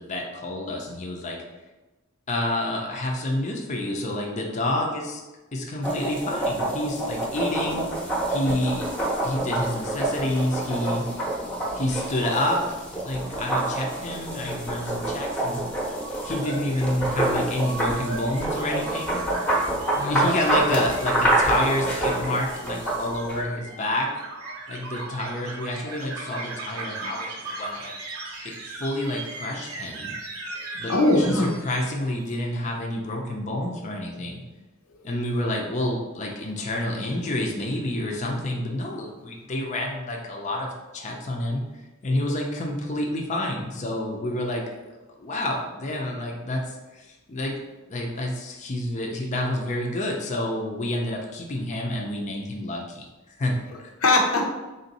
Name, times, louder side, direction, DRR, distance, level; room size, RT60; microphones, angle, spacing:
voice 1, 0.0-1.4 2.3-5.2 5.5-7.9 8.3-11.1 11.7-15.6 16.2-19.3 20.0-24.1 24.7-27.9 28.4-30.1 30.7-34.4 35.0-44.7 45.2-47.6 47.9-53.9, left 1 dB, 35° left, -1 dB, 0.5 m, -29 dB
sound 1, 5.8-23.4, right 1 dB, 5° left, 0.8 m, -27 dB
sound 2, 15.8-32.3, right 2 dB, 80° right, 0.7 m, -37 dB
voice 2, 20.0-20.3 30.9-31.6 54.0-54.5, left 2 dB, 85° left, 1 dB, 0.7 m, -21 dB
3.7 x 2.6 x 4.0 m, 1.1 s
head